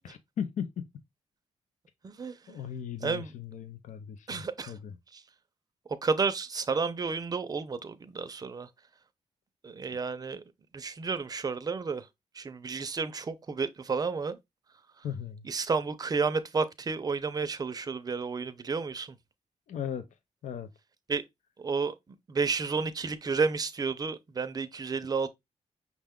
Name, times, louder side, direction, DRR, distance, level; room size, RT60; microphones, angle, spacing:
voice 1, 0.0-0.9 2.5-5.0 15.0-15.5 19.7-20.1 20.4-20.7, left 8 dB, 90° left, 0.5 m, -37 dB
voice 2, 2.0-2.6 3.0-3.3 4.3-4.7 5.1-5.2 6.0-8.7 9.6-10.4 10.7-12.1 12.3-14.4 15.4-19.2 21.1-21.2 21.6-21.9 22.3-25.3, right 4 dB, 30° right, 0.4 m, -31 dB
5.8 x 2.2 x 3.5 m
wide cardioid pair, 145°, 12 cm